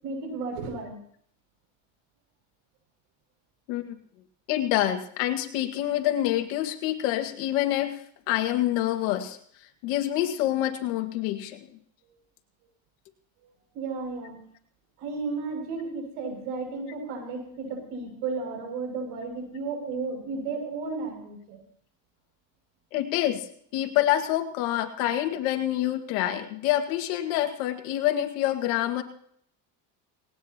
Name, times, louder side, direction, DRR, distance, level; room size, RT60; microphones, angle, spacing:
voice 1, 0.0-1.0 13.7-14.4 15.0-21.6, right 4 dB, 85° right, 3 dB, 6.8 m, -33 dB
voice 2, 4.5-8.0 8.3-9.4 9.8-11.6 22.9-23.5 23.7-29.0, left 13 dB, 85° left, 6 dB, 2.1 m, -26 dB
19.5 x 18.5 x 3.0 m, 0.62 s
cardioid pair, 130°, 40 cm